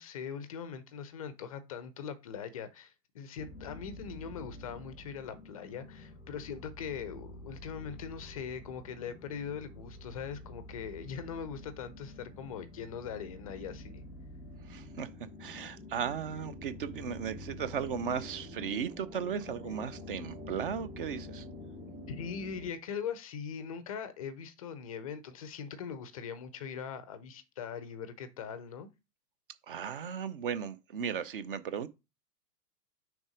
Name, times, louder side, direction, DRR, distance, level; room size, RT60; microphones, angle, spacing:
voice 1, 0.0-14.0 22.1-28.9, left 7 dB, 25° left, 0.4 m, -41 dB
sound 1, 3.4-22.7, left 2 dB, ahead, 1.0 m, -47 dB
voice 2, 14.7-15.1 15.4-21.4 29.7-31.9, right 7 dB, 35° right, 0.5 m, -36 dB
6.2 x 3.5 x 4.9 m
figure-of-eight pair, 105°, 49 cm